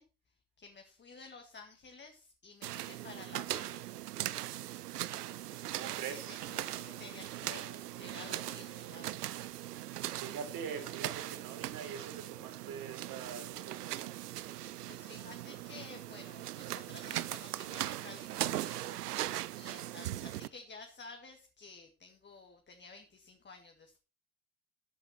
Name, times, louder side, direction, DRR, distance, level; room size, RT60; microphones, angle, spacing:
voice 1, 0.0-3.8 5.7-7.7 8.0-9.3 14.4-24.0, left 4 dB, 25° left, 4 dB, 2.1 m, -53 dB
sound 1, 2.6-20.5, right 14 dB, 90° right, 0.6 m, -40 dB
voice 2, 5.7-6.4 10.1-14.2 19.7-19.9, right 6 dB, 45° right, 5 dB, 4.6 m, -44 dB
sound 2, 6.5-10.4, left 6 dB, 75° left, 6.5 m, -57 dB
13.5 x 7.7 x 4.4 m, 0.32 s
hypercardioid pair, 80°, 45 cm